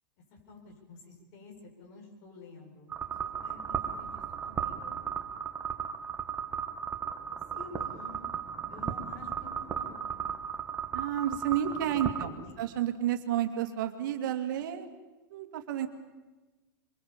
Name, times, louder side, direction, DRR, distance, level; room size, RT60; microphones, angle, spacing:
voice 1, 0.3-2.9 3.4-5.2 7.3-8.2 8.7-10.4 12.2-12.6, left 4 dB, 50° left, 2 dB, 7.6 m, -50 dB
sound 1, 2.9-12.3, right 7 dB, 20° right, 1.9 m, -36 dB
voice 2, 10.9-12.3 12.6-14.9 15.3-15.9, right 10 dB, 65° right, 6 dB, 2.4 m, -31 dB
23.5 x 22.5 x 7.3 m, 1.2 s
hypercardioid pair, 130°, 11 cm